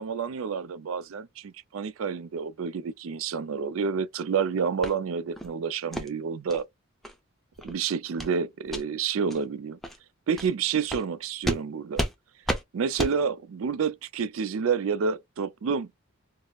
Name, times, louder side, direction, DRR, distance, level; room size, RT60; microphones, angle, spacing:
voice 1, 0.0-6.7 7.6-9.8 10.3-12.1 12.7-15.9, right 6 dB, 75° right, 0.4 m, -29 dB
sound 1, 4.8-4.9 5.4-5.5 5.9-6.1 6.5-6.6 7.0-7.1 7.5-7.7 8.2-8.3 8.7-8.8 9.3-9.4 9.8-10.0 10.4-10.5 10.9-11.0 11.4-11.6 12.0-12.1 12.5-12.6 13.0-13.1, equal, ahead, 0.6 m, -31 dB
4.7 x 2.0 x 2.3 m
head